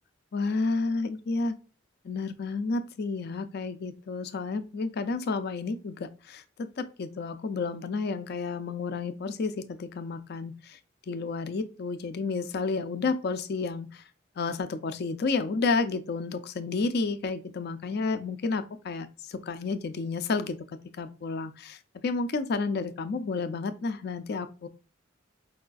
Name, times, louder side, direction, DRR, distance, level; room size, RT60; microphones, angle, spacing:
voice 1, 0.3-1.5 2.0-10.8 11.1-14.0 14.4-20.6 21.0-21.8 22.0-24.7, left 4 dB, 55° left, 0.4 m, -31 dB
4.7 x 2.3 x 2.4 m
head